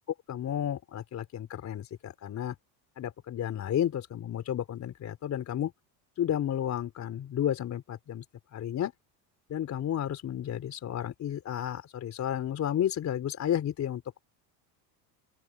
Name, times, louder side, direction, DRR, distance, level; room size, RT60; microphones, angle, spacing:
voice 1, 0.3-2.6 3.0-5.7 6.2-8.2 8.5-8.9 9.5-14.2, left 10 dB, 40° left, 3.8 m, -32 dB
open air
supercardioid pair, 125°, 44 cm